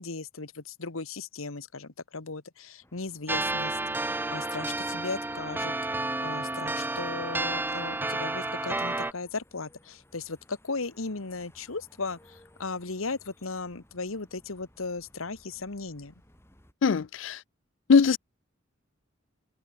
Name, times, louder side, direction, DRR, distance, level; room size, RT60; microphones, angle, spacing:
voice 1, 0.0-5.7 6.2-16.1, left 3 dB, 90° left, 1.5 m, -37 dB
sound 1, 2.8-16.7, left 1 dB, 10° left, 4.9 m, -61 dB
sound 2, 3.3-9.1, right 2 dB, 10° right, 0.6 m, -31 dB
voice 2, 16.8-17.4 17.9-18.2, left 5 dB, 65° left, 0.4 m, -21 dB
head